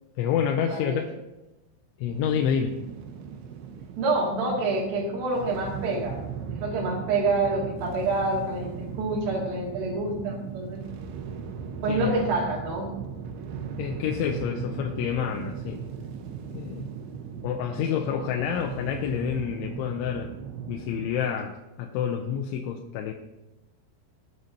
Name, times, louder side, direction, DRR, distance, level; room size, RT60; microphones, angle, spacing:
voice 1, 0.2-1.1 2.0-2.8 11.9-12.2 13.8-15.8 16.5-16.9 17.4-20.3 20.7-23.1, left 8 dB, 90° left, 2 dB, 3.1 m, -28 dB
voice 2, 0.7-1.0 4.0-6.2 6.5-10.8 11.8-12.9, right 2 dB, 60° right, -3 dB, 3.9 m, -27 dB
sound 1, 2.1-21.1, right 6 dB, 85° right, 3.3 m, -38 dB
19.5 x 7.8 x 2.8 m, 1.0 s
omnidirectional pair, 5.2 m